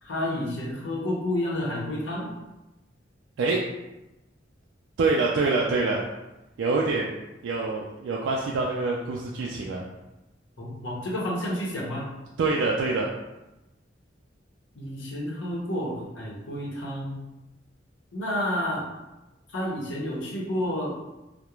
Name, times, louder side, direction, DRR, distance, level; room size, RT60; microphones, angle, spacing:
voice 1, 0.0-2.3 10.6-12.1 14.7-17.2 18.1-18.9 19.5-21.0, left 1 dB, 90° left, -3 dB, 0.7 m, -30 dB
voice 2, 5.0-6.0 6.6-7.1 7.4-9.9 12.4-13.1, right 3 dB, 90° right, -2 dB, 0.3 m, -25 dB
2.3 x 2.1 x 2.9 m, 0.99 s
head